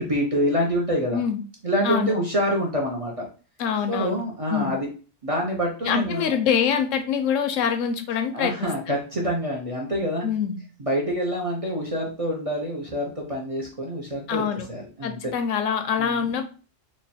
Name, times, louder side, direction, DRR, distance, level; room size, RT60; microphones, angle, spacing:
voice 1, 0.0-1.2 1.6-3.3 3.9-4.9 5.2-6.4 8.3-10.3 10.8-14.4 14.7-15.3 16.0-16.3, equal, 40° right, -2 dB, 0.5 m, -26 dB
voice 2, 1.8-2.2 3.6-4.2 4.5-4.8 5.8-9.0 10.2-10.6 14.3-14.7 15.0-16.5, left 7 dB, 80° left, 8 dB, 0.9 m, -25 dB
3.0 x 2.2 x 4.1 m, 0.37 s
omnidirectional pair, 1.3 m